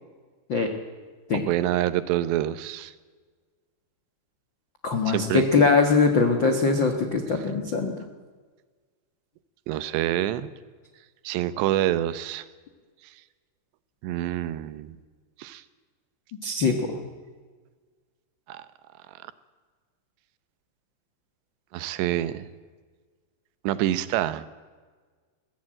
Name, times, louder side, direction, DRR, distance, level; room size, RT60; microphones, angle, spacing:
voice 1, 1.5-2.9 5.1-5.5 9.7-10.5 11.2-12.4 14.0-15.0 15.4-15.6 18.5-18.6 21.7-22.5 23.6-24.4, right 13 dB, 85° right, 14 dB, 3.1 m, -26 dB
voice 2, 4.8-7.9 16.4-17.0, left 4 dB, 80° left, 5 dB, 1.0 m, -22 dB
22.0 x 16.0 x 8.8 m, 1.5 s
omnidirectional pair, 4.9 m